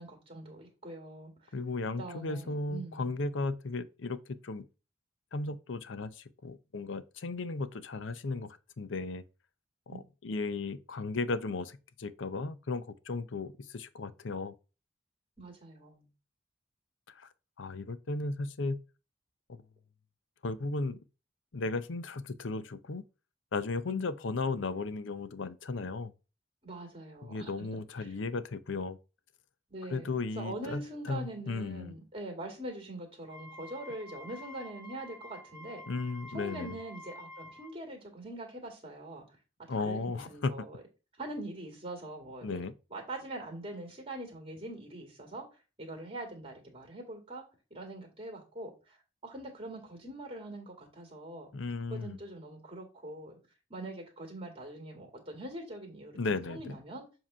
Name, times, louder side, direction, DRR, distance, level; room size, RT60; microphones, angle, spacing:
voice 1, 0.0-1.5 2.0-3.1 9.9-10.0 15.4-16.1 23.9-24.1 26.6-27.5 28.0-28.1 29.7-35.8 36.3-39.4 39.7-40.8 41.2-42.6 42.9-45.4 45.8-47.4 47.7-51.5 51.9-53.4 53.7-57.0, right 1 dB, 30° right, 2.0 m, -43 dB
voice 2, 1.5-4.2 4.4-4.6 5.3-9.2 9.9-14.5 17.1-17.3 17.6-18.8 19.5-19.6 20.4-21.0 21.5-23.0 23.5-26.1 27.2-29.0 29.9-31.9 35.9-36.8 39.7-40.7 42.4-42.7 51.5-52.2 56.1-56.7, left 3 dB, 90° left, 0.6 m, -35 dB
Wind instrument woodwind instrument, 33.2-37.7, left 2 dB, 15° right, 0.9 m, -49 dB
7.5 x 2.9 x 5.4 m
head